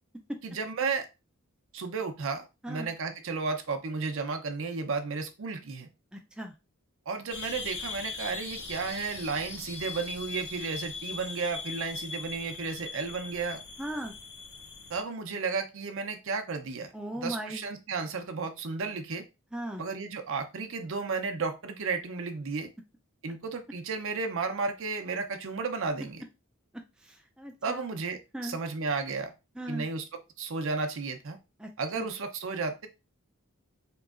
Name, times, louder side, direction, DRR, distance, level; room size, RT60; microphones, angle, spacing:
voice 1, 0.4-1.1 1.7-5.9 7.1-13.6 14.9-19.2 19.8-22.7 23.2-26.2 27.6-29.3 29.7-30.0 30.4-31.4 31.8-32.9, right 4 dB, 60° right, 6 dB, 0.6 m, -33 dB
voice 2, 6.1-6.5 13.8-14.1 16.9-17.6 19.5-19.8 27.0-27.8 28.3-28.6 29.6-29.9 31.6-31.7 32.0-32.1, right 1 dB, 5° right, 2 dB, 0.3 m, -37 dB
sound 1, 7.3-15.0, left 4 dB, 55° left, 0.6 m, -40 dB
3.4 x 3.0 x 2.4 m, 0.27 s
head